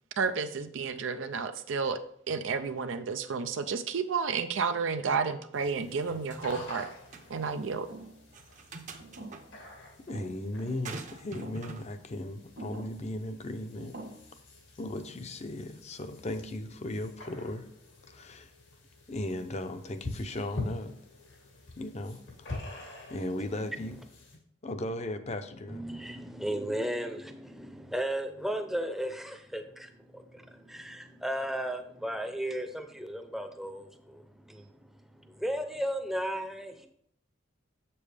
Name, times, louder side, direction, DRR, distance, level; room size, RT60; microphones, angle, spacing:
voice 1, 0.2-2.0 2.3-6.9 7.3-7.9, right 5 dB, 85° right, 8 dB, 0.5 m, -31 dB
sound 1, 5.5-24.4, left 2 dB, 90° left, 2.3 m, -46 dB
sound 2, 5.8-6.8 7.1-7.3 8.3-9.4 10.8-11.9, right 3 dB, 40° right, 0.7 m, -44 dB
sound 3, 7.9-8.2 9.0-9.6 10.1-10.4 11.3-11.7 12.6-13.0 13.8-14.1, right 2 dB, 65° right, 1.6 m, -45 dB
voice 2, 10.1-14.0 14.8-17.7 18.1-18.5 19.1-21.0 21.8-24.0 24.6-25.8, left 1 dB, 35° left, 9 dB, 0.6 m, -37 dB
voice 3, 25.7-34.7 35.2-36.9, right 1 dB, ahead, 6 dB, 0.6 m, -35 dB
7.2 x 6.9 x 3.4 m, 0.67 s
head